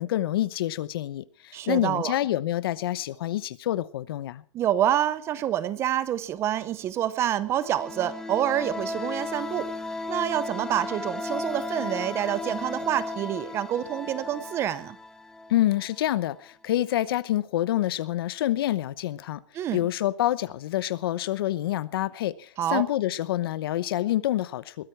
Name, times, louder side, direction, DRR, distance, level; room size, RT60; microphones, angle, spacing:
voice 1, 0.0-4.4 15.5-19.4 19.7-24.9, left 13 dB, 50° left, 0.9 m, -27 dB
voice 2, 1.5-2.1 4.5-9.7 10.1-15.0 19.5-19.8 22.6-22.8, right 11 dB, 15° right, 0.7 m, -27 dB
sound 1, 7.5-16.1, left 2 dB, 5° left, 1.1 m, -35 dB
21.5 x 15.0 x 4.6 m
hypercardioid pair, 165°, 16 cm